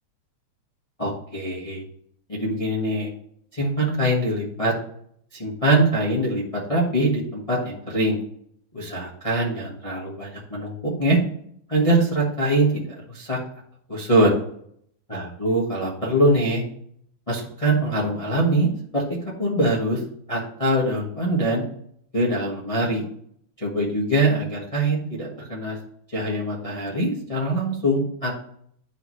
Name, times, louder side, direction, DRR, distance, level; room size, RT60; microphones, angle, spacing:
voice 1, 1.0-1.8 2.3-3.1 3.5-4.7 5.3-6.4 6.7-8.2 8.7-11.2 11.7-12.8 13.1-13.4 13.9-14.3 15.1-16.6 17.3-19.0 19.4-20.0 20.3-21.6 22.1-23.0 23.6-25.8 26.1-28.4, right 1 dB, 30° left, -6 dB, 0.6 m, -23 dB
11.5 x 4.1 x 3.1 m, 0.67 s
omnidirectional pair, 3.4 m